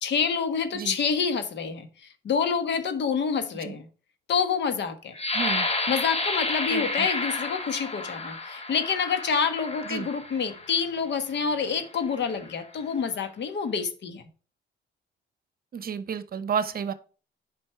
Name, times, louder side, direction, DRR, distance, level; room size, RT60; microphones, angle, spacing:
voice 1, 0.0-1.9 2.2-3.9 4.3-5.1 5.9-14.2, left 6 dB, 65° left, 1.4 m, -27 dB
sound 1, 5.1-10.8 11.5-11.6 12.1-12.5, left 2 dB, 30° left, 1.5 m, -31 dB
voice 2, 5.3-5.7 6.7-7.1 9.8-10.1 15.7-16.9, right 7 dB, 50° right, 0.8 m, -31 dB
7.7 x 5.4 x 4.6 m
cardioid pair, 90°, 20 cm